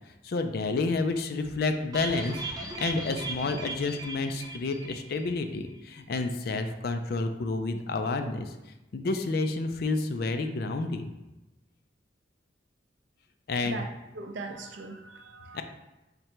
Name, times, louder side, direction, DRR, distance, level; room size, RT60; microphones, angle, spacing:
voice 1, 0.2-2.4 2.8-8.6 8.9-11.1 13.5-13.8 15.5-15.6, left 3 dB, 55° left, 7 dB, 0.4 m, -30 dB
sound 1, 1.9-5.4 5.6-5.7 6.1-6.2, right 2 dB, 20° right, 0.7 m, -38 dB
voice 2, 13.7-15.6, right 3 dB, 75° right, 4 dB, 0.5 m, -40 dB
5.1 x 2.1 x 4.4 m, 1.0 s
head